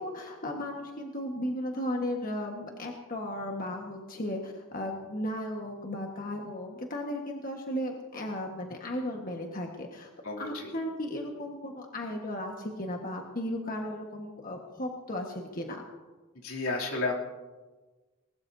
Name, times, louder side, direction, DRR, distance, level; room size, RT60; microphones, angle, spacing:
voice 1, 0.0-10.1 10.4-15.8, left 1 dB, 40° left, 1 dB, 1.5 m, -35 dB
voice 2, 10.2-10.7 16.3-17.1, left 3 dB, 80° left, -2 dB, 2.9 m, -32 dB
20.5 x 20.5 x 2.8 m, 1.3 s
head